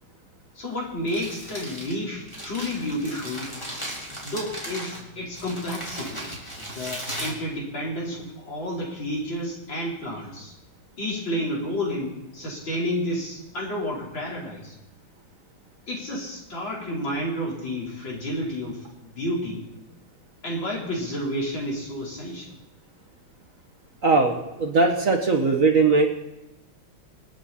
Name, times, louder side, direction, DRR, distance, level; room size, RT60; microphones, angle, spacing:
voice 1, 0.5-3.5 4.2-6.2 6.6-10.5 11.0-14.7 15.9-19.7 20.4-22.5, equal, 65° left, -4 dB, 5.1 m, -30 dB
Crumpling crinkling, 1.0-8.2, equal, 15° left, 3.6 m, -37 dB
voice 2, 24.0-26.1, right 3 dB, 45° right, 2 dB, 1.6 m, -20 dB
26.0 x 8.7 x 4.3 m, 0.98 s
omnidirectional pair, 2.2 m